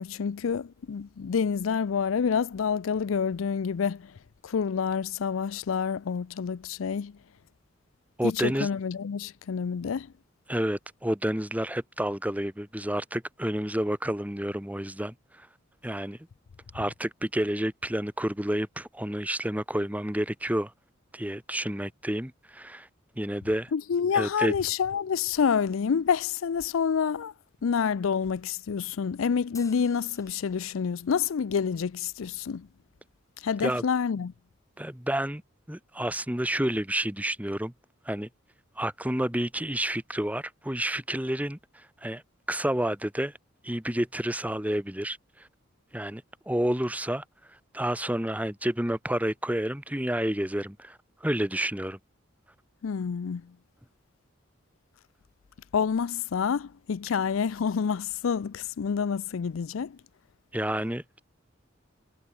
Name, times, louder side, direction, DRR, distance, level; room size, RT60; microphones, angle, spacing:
voice 1, 0.0-4.1 4.4-7.1 8.2-10.1 23.7-27.3 27.6-32.7 33.4-34.3 52.8-53.4 55.7-60.0, left 6 dB, 85° left, 0.4 m, -28 dB
voice 2, 8.2-8.7 10.5-15.5 15.8-16.2 16.7-20.7 21.1-22.9 23.1-23.7 24.1-24.5 33.6-33.8 34.8-35.4 35.7-37.7 38.0-38.3 38.8-42.2 42.5-43.3 43.6-45.5 45.9-47.2 47.7-52.0 60.5-61.2, right 1 dB, 5° right, 1.6 m, -30 dB
sound 1, 29.5-31.2, left 5 dB, 15° left, 5.4 m, -52 dB
head